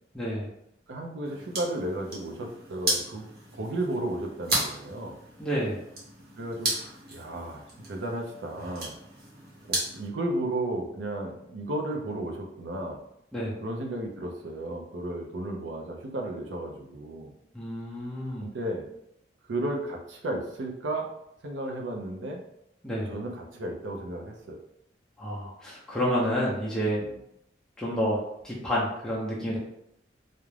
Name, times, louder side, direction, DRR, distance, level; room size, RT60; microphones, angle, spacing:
voice 1, 0.1-0.5 5.4-5.8 13.3-13.5 17.5-18.5 22.8-23.1 25.2-27.0 27.8-28.2 28.4-29.6, equal, 5° left, -7 dB, 0.4 m, -29 dB
voice 2, 0.9-3.2 3.5-5.2 6.4-6.8 7.1-8.9 9.7-13.0 13.6-17.3 18.4-18.9 19.5-21.1 21.4-22.4 23.1-24.6 27.0-27.2, right 1 dB, 85° right, 2 dB, 0.5 m, -33 dB
sound 1, 1.2-10.1, right 2 dB, 55° right, 0.8 m, -35 dB
2.4 x 2.0 x 3.1 m, 0.80 s
head